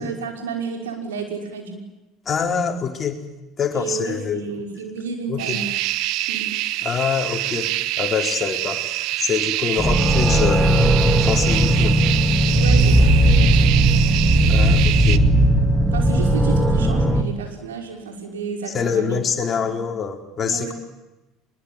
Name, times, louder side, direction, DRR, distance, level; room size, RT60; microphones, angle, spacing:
voice 1, 0.0-1.8 3.7-5.7 6.3-6.5 12.5-13.8 15.9-19.2 19.6-19.8 20.4-20.7, right 5 dB, 80° right, 3 dB, 5.6 m, -31 dB
voice 2, 2.3-3.2 3.6-4.5 5.3-5.6 6.8-7.7 8.0-8.8 9.2-10.6 11.2-12.0 14.5-15.2 18.7-20.7, left 6 dB, 35° left, 4 dB, 4.6 m, -25 dB
sound 1, 5.4-15.2, right 16 dB, 60° right, 1.2 m, -26 dB
sound 2, 9.8-17.2, right 1 dB, 5° right, 3.7 m, -18 dB
sound 3, 12.6-16.6, right 1 dB, 25° right, 3.9 m, -19 dB
24.0 x 22.0 x 9.0 m, 1.0 s
hypercardioid pair, 70°, 0 cm